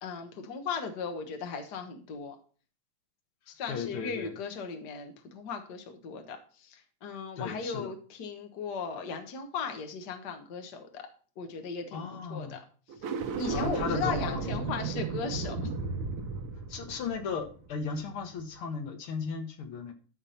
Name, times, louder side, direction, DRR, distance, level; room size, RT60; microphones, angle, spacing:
voice 1, 0.0-2.4 3.5-11.0 11.4-12.0 12.3-12.6 13.4-15.7, left 5 dB, 90° left, 5 dB, 0.9 m, -37 dB
voice 2, 3.7-4.3 7.4-7.9 11.9-12.6 13.5-14.8 16.7-19.9, left 5 dB, 65° left, 7 dB, 1.4 m, -36 dB
sound 1, 12.9-18.2, right 4 dB, 65° right, 1.4 m, -34 dB
12.5 x 4.3 x 5.7 m, 0.40 s
omnidirectional pair, 3.7 m